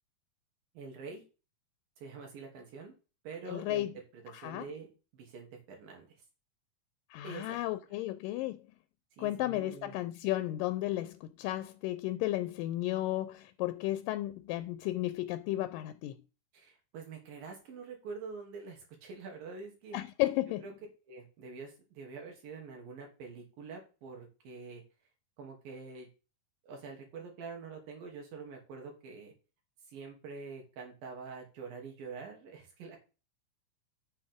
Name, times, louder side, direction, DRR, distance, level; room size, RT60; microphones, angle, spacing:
voice 1, 0.7-1.2 2.0-2.9 3.2-4.9 5.1-6.1 7.2-7.7 9.2-10.0 16.5-20.0 20.6-20.7 21.1-24.8 25.4-26.1 26.6-29.3 29.9-33.0, right 4 dB, 90° right, 4.3 m, -46 dB
voice 2, 3.5-3.9 4.3-4.7 7.1-8.6 9.2-16.2 19.9-20.7, left 15 dB, 85° left, 2.2 m, -34 dB
8.7 x 7.4 x 3.6 m
omnidirectional pair, 3.9 m